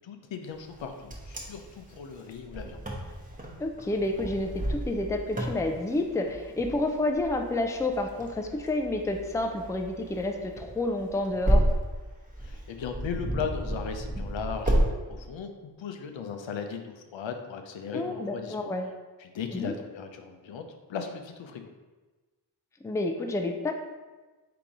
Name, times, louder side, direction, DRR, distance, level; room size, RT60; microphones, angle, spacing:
voice 1, 0.0-2.8 12.4-15.5 15.8-18.7 19.2-20.6 20.9-21.7, left 6 dB, 90° left, 5 dB, 0.6 m, -37 dB
Wind, 0.7-14.9, right 1 dB, 20° right, 0.8 m, -32 dB
voice 2, 3.6-11.6 17.9-18.9 19.5-19.7 22.8-23.7, left 2 dB, 10° left, 4 dB, 0.3 m, -29 dB
3.9 x 2.9 x 4.7 m, 1.2 s
wide cardioid pair, 90°, 44 cm